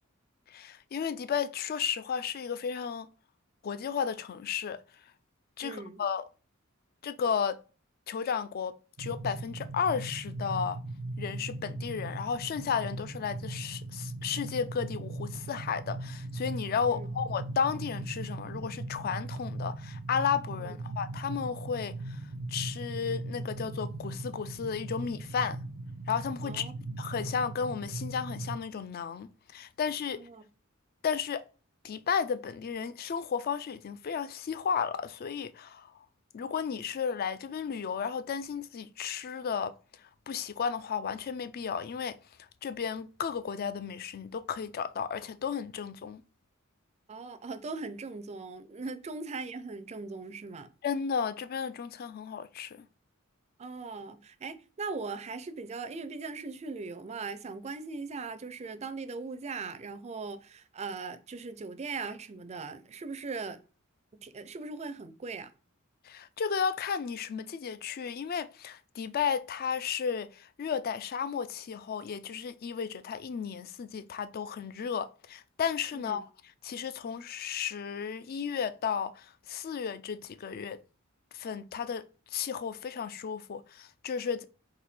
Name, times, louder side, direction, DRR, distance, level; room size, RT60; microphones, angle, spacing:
voice 1, 0.5-3.1 3.6-4.8 5.6-6.2 7.0-7.6 8.1-10.8 11.2-22.2 22.5-25.6 26.1-26.7 27.0-30.2 31.0-31.4 31.8-35.9 36.3-39.7 40.3-42.2 42.6-46.2 50.8-52.9 66.1-76.2 76.6-80.8 81.3-82.0 82.3-84.4, left 6 dB, 45° left, 0.4 m, -33 dB
voice 2, 5.6-6.0 16.8-17.1 20.6-20.7 26.4-26.7 30.1-30.4 47.1-50.7 53.6-63.6 64.1-65.5 75.9-76.2, right 4 dB, 30° right, 0.4 m, -39 dB
sound 1, 9.0-28.6, right 2 dB, 80° right, 0.6 m, -39 dB
4.2 x 2.6 x 4.3 m
head